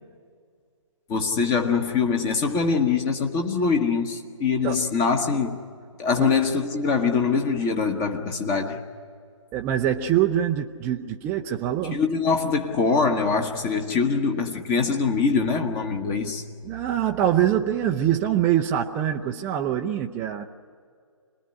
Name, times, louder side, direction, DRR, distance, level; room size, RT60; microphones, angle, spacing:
voice 1, 1.1-5.6 6.0-8.8 11.9-16.5, left 5 dB, 20° left, 1.2 m, -23 dB
voice 2, 9.5-12.0 16.6-20.5, right 10 dB, 10° right, 0.6 m, -24 dB
26.5 x 20.0 x 9.9 m
figure-of-eight pair, 140°, 17 cm